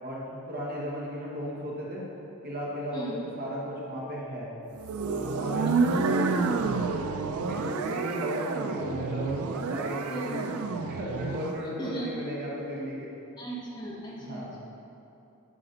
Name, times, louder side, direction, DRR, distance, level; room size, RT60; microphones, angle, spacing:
voice 1, 0.0-2.1 2.4-4.5 5.0-6.4 6.7-10.5 10.8-13.1 14.2-14.5, equal, 45° right, -4 dB, 1.3 m, -35 dB
sound 1, 4.8-11.6, right 4 dB, 85° right, 0.4 m, -29 dB
voice 2, 10.1-10.8 11.8-12.1 13.4-14.6, right 2 dB, 20° left, -6 dB, 1.3 m, -38 dB
10.0 x 5.1 x 3.9 m, 2.8 s
head